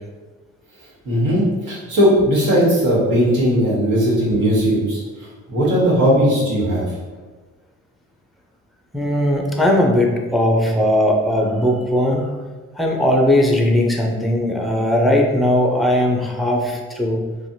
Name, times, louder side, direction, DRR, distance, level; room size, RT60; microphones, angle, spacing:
voice 1, 1.0-5.0 5.5-6.8, equal, 80° right, -7 dB, 1.4 m, -17 dB
voice 2, 8.9-12.3 12.7-17.2, left 1 dB, ahead, 0 dB, 0.4 m, -18 dB
3.2 x 2.2 x 2.7 m, 1.3 s
cardioid pair, 90°, 30 cm